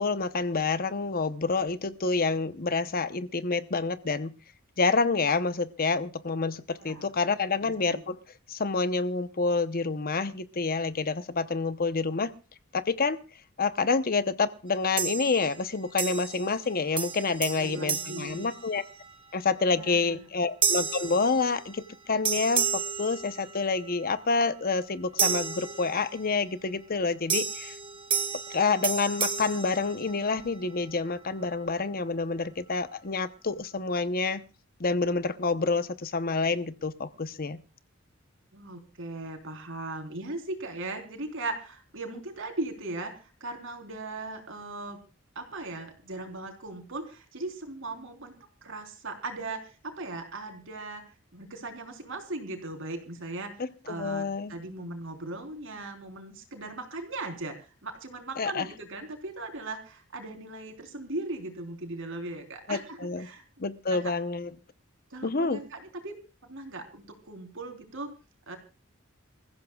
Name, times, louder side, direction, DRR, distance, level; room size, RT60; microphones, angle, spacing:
voice 1, 0.0-4.3 4.8-8.2 8.5-12.3 12.7-13.2 13.6-18.8 19.3-27.7 28.5-34.4 34.8-37.6 53.6-54.5 58.4-58.7 62.7-63.3 63.6-64.5 65.2-65.6, left 4 dB, 45° left, 12 dB, 0.9 m, -28 dB
voice 2, 6.8-7.1 7.6-8.0 17.4-18.5 19.7-20.2 38.5-45.0 45.4-48.3 48.6-51.0 51.3-63.5 63.9-64.1 65.1-66.1 66.4-68.1 68.5-68.6, right 2 dB, 65° right, 5 dB, 3.9 m, -38 dB
sound 1, 15.0-15.6 16.0-16.7 17.0-19.1 19.6-19.9 20.6-21.9 22.2-23.9 25.2-26.4 27.3-30.5, right 6 dB, 25° right, 1.8 m, -32 dB
27.5 x 15.0 x 2.4 m, 0.33 s
head